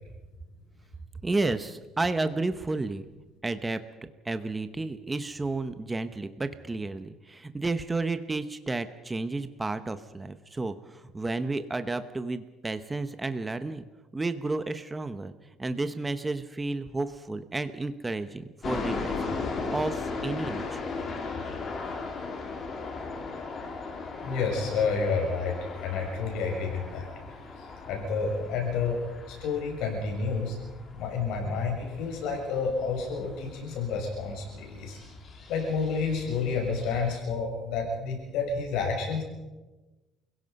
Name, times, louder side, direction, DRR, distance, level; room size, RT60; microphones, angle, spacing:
voice 1, 1.2-3.0 3.4-3.8 4.2-13.8 14.1-15.3 15.6-19.2 19.7-20.8, right 3 dB, 10° right, 10 dB, 0.9 m, -31 dB
sound 1, 18.6-37.2, left 4 dB, 35° left, 3.3 m, -38 dB
voice 2, 24.2-27.1 27.6-29.0 29.3-30.6 30.9-35.0 35.5-39.2, left 4 dB, 80° left, 1 dB, 6.9 m, -30 dB
29.5 x 16.5 x 5.4 m, 1.2 s
cardioid pair, 160°, 0 cm